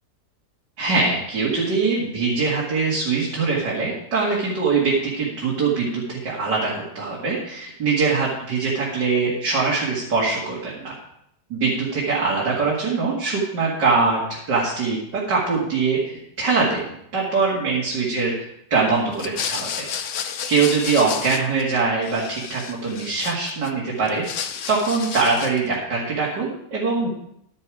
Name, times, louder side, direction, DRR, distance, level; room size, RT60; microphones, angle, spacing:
voice 1, 0.8-10.9 11.5-19.9 20.2-24.2 24.7-27.1, right 4 dB, 80° right, -5 dB, 2.8 m, -23 dB
sound 1, 19.1-21.8 22.0-23.7 24.1-25.7, left 7 dB, 55° left, 0.9 m, -31 dB
12.0 x 9.7 x 4.9 m, 0.76 s
omnidirectional pair, 1.8 m